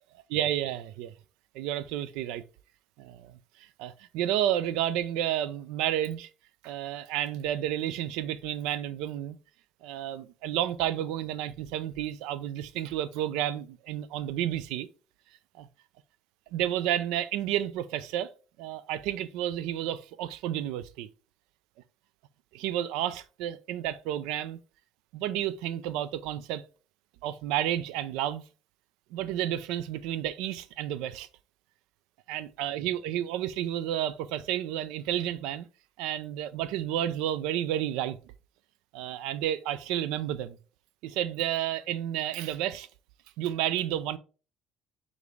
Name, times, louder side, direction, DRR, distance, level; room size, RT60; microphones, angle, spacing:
voice 1, 0.3-1.1 1.5-2.4 3.0-3.3 3.6-6.3 6.6-9.4 9.8-14.9 15.6-15.7 16.5-18.3 18.6-21.1 22.5-24.6 25.1-26.6 27.2-28.4 29.1-31.3 32.3-35.7 36.0-38.2 38.9-40.6 41.0-42.9 43.4-44.2, right 11 dB, 85° right, 0.3 m, -31 dB
5.0 x 2.5 x 3.1 m
supercardioid pair, 90°, 0 cm